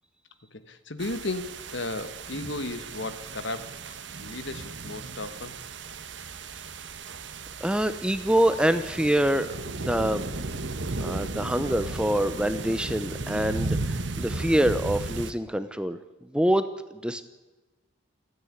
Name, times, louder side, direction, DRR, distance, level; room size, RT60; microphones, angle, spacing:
voice 1, 0.5-5.6, left 2 dB, 60° left, 12 dB, 1.5 m, -35 dB
sound 1, 1.0-15.3, right 3 dB, 60° right, 1.2 m, -35 dB
voice 2, 7.6-10.3 11.0-17.3, right 1 dB, 5° right, 11 dB, 0.8 m, -26 dB
28.5 x 9.9 x 9.7 m, 1.2 s
head